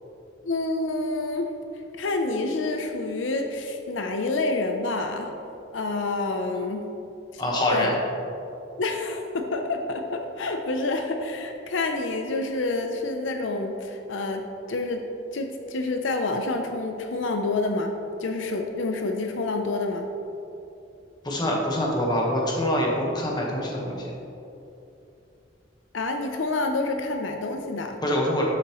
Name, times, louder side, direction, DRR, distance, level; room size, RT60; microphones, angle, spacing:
voice 1, 0.4-1.5 2.0-5.3 5.7-6.9 7.3-7.4 7.7-8.0 8.8-15.1 15.3-20.1 25.9-28.0, left 2 dB, 80° left, 4 dB, 0.6 m, -28 dB
voice 2, 7.4-7.9 21.2-24.1 28.0-28.4, left 1 dB, 20° left, -2 dB, 1.3 m, -25 dB
11.5 x 7.0 x 3.1 m, 2.8 s
head